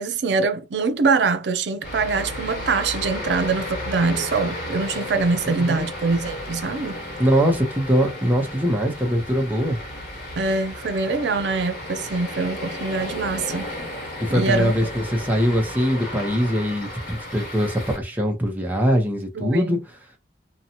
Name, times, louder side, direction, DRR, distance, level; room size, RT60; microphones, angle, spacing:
voice 1, 0.0-7.0 10.4-13.7 14.3-14.7 19.4-19.8, right 4 dB, 70° right, 0.5 m, -24 dB
sound 1, 1.8-18.0, left 1 dB, 60° left, 1.3 m, -33 dB
voice 2, 5.4-5.8 7.2-9.8 14.2-19.8, equal, 10° right, 0.8 m, -22 dB
2.7 x 2.3 x 2.8 m
head